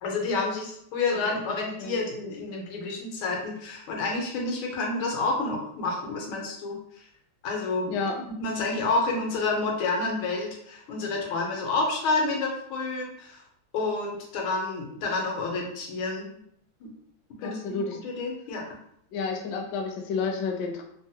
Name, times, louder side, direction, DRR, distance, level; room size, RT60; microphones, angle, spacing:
voice 1, 0.0-6.8 7.4-8.0 8.4-13.4 13.7-16.4 16.8-16.9 17.4-18.6, left 3 dB, 90° left, 0 dB, 1.6 m, -29 dB
voice 2, 17.4-18.0 19.1-20.9, left 4 dB, 75° left, 2 dB, 1.0 m, -30 dB
3.6 x 2.0 x 2.7 m, 0.71 s
omnidirectional pair, 2.2 m